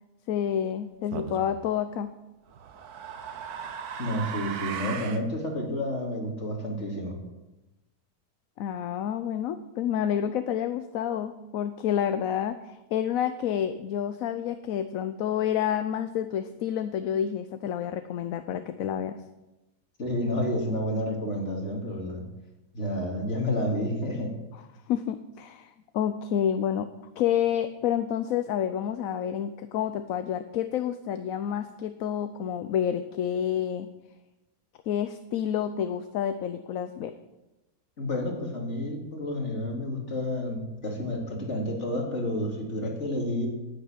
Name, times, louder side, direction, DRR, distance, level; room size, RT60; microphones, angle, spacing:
voice 1, 0.3-2.1 8.6-19.2 24.9-26.9 27.2-33.9 34.9-37.1, left 9 dB, 70° left, 10 dB, 1.1 m, -29 dB
sound 1, 1.1-1.5 2.5-5.3, right 7 dB, 85° right, 1.5 m, -37 dB
voice 2, 4.0-7.2 20.0-22.3 22.7-24.3 38.0-43.5, left 1 dB, 50° left, 0 dB, 2.9 m, -30 dB
9.7 x 9.3 x 8.9 m, 1.0 s
omnidirectional pair, 1.6 m